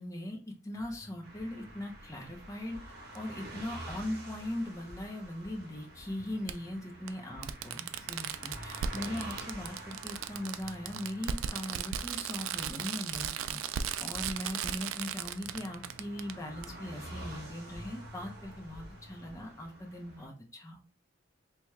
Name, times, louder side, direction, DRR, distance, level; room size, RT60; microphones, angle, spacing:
voice 1, 0.0-2.8 3.1-20.8, left 1 dB, 15° left, 1 dB, 0.6 m, -40 dB
sound 1, 0.7-19.5, left 1 dB, 65° right, 1.3 m, -54 dB
sound 2, 1.2-20.3, right 1 dB, 50° right, 1.1 m, -49 dB
Fireworks, 3.2-3.3 4.8-4.9 6.5-6.6 7.1-7.2 7.4-16.3 16.6-16.7, right 8 dB, 85° right, 0.3 m, -36 dB
4.6 x 2.9 x 2.2 m, 0.38 s
head